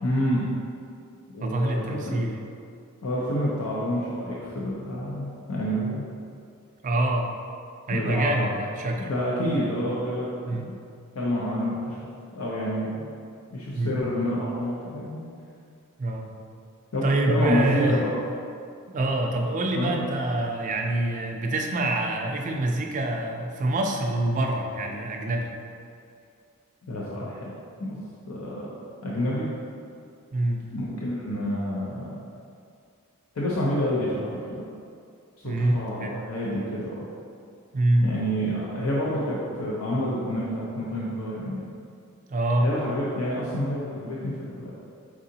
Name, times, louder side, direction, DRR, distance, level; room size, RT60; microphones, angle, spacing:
voice 1, 0.0-0.4 1.3-2.3 3.0-6.1 7.9-8.6 9.0-10.8 11.1-12.0 12.3-13.1 13.5-15.3 16.9-18.1 19.8-20.0 26.9-27.5 27.8-28.0 28.3-28.7 29.0-29.5 30.7-32.1 33.3-34.6 35.4-37.1 38.0-41.7 42.6-44.7, equal, 70° left, -6 dB, 0.6 m, -28 dB
voice 2, 1.4-2.4 6.8-7.3 7.9-9.1 10.5-10.7 13.7-14.0 16.0-16.3 17.0-18.0 18.9-25.5 30.3-30.7 35.4-36.2 37.7-38.2 42.3-42.7, right 1 dB, 35° right, 2 dB, 0.3 m, -25 dB
4.7 x 3.7 x 2.7 m, 2.4 s
head